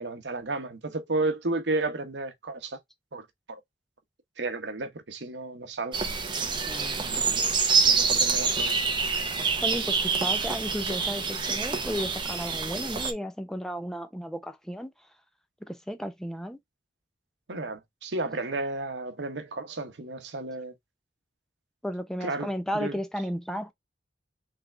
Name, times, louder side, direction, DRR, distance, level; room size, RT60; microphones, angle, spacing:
voice 1, 0.0-2.8 3.1-3.2 3.5-3.6 4.4-6.0 7.0-7.5 7.8-8.8 17.5-20.7 22.2-23.0, right 2 dB, 80° right, 1.0 m, -33 dB
sound 1, 5.9-13.1, right 5 dB, 25° right, 0.8 m, -26 dB
voice 2, 6.7-7.1 9.6-14.9 15.6-16.6 21.8-23.7, equal, 5° left, 0.6 m, -34 dB
3.7 x 3.5 x 3.3 m
head